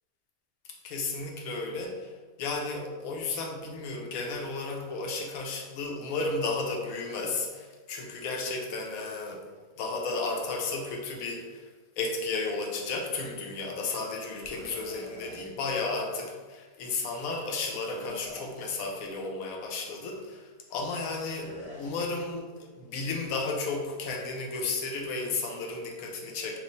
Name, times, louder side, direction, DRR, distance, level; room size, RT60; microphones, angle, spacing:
voice 1, 0.8-2.1 2.4-9.4 9.8-11.7 12.0-26.6, left 3 dB, 80° left, 1 dB, 1.1 m, -33 dB
sound 1, 14.3-15.4 17.8-18.9 21.3-22.0, left 1 dB, 50° left, 0.4 m, -45 dB
3.1 x 2.5 x 4.0 m, 1.4 s
omnidirectional pair, 1.5 m